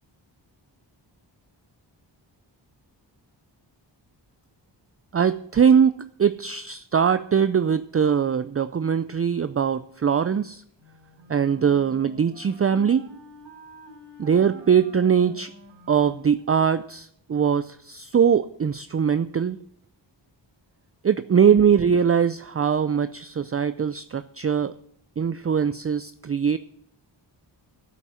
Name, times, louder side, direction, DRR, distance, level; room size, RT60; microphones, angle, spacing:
voice 1, 5.1-10.6 11.3-13.1 14.2-15.5 15.9-19.6 21.0-24.7 25.2-26.6, right 7 dB, 30° right, 14 dB, 0.5 m, -21 dB
Wind instrument woodwind instrument, 10.8-16.9, right 3 dB, 65° right, 3.6 m, -46 dB
9.1 x 8.3 x 8.9 m, 0.69 s
cardioid pair, 70°, 45 cm